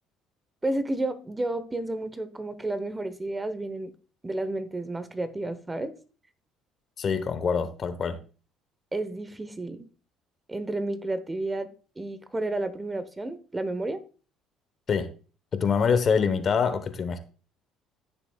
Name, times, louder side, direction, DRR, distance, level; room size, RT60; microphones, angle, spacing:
voice 1, 0.6-3.9 4.2-5.9 8.9-9.9 10.5-11.7 12.0-14.0, right 2 dB, 15° right, 1.0 m, -31 dB
voice 2, 7.0-8.2 14.9-15.1 15.5-17.2, left 6 dB, 45° left, 1.1 m, -25 dB
14.5 x 6.9 x 2.3 m
supercardioid pair, 85°, 0 cm